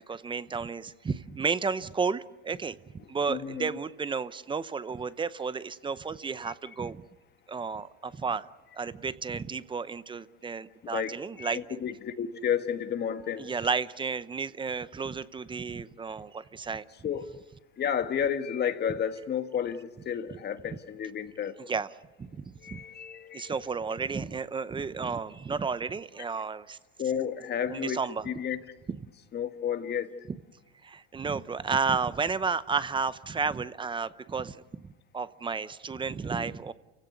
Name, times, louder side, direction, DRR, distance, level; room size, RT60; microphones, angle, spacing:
voice 1, 0.1-2.8 3.1-7.0 7.5-8.5 8.7-11.6 13.4-16.8 21.7-21.9 22.2-22.8 23.3-26.8 27.7-28.2 28.9-29.0 30.8-34.9 35.1-36.7, right 5 dB, 15° right, 16 dB, 0.8 m, -32 dB
voice 2, 3.0-3.8 6.4-6.5 10.8-13.5 17.0-17.3 17.8-21.5 22.6-23.5 27.0-28.0 28.2-28.6 29.3-30.1 36.4-36.5, left 8 dB, 30° left, 8 dB, 1.8 m, -32 dB
29.5 x 16.5 x 9.7 m, 1.2 s
supercardioid pair, 115°, 33 cm